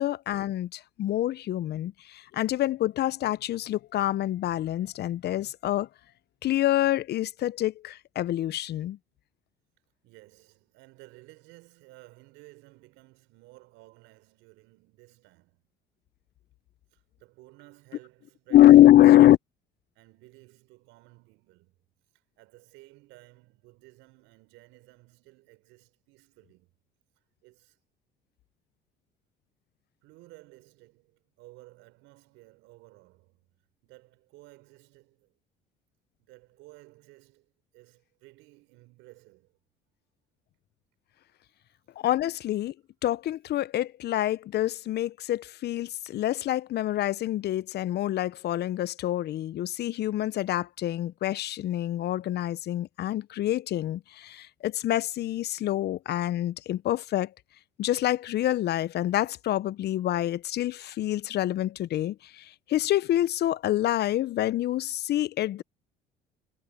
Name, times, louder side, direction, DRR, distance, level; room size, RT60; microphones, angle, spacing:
voice 1, 0.0-5.9 6.4-9.0 18.5-19.4 42.0-42.7 43.0-57.3 57.8-65.6, left 13 dB, 55° left, 0.9 m, -25 dB
voice 2, 10.0-15.6 16.9-19.2 19.9-21.8 22.4-26.7 27.4-27.8 30.0-33.6 33.8-35.4 36.2-39.6, right 21 dB, 70° right, 4.9 m, -55 dB
hypercardioid pair, 65°, 20 cm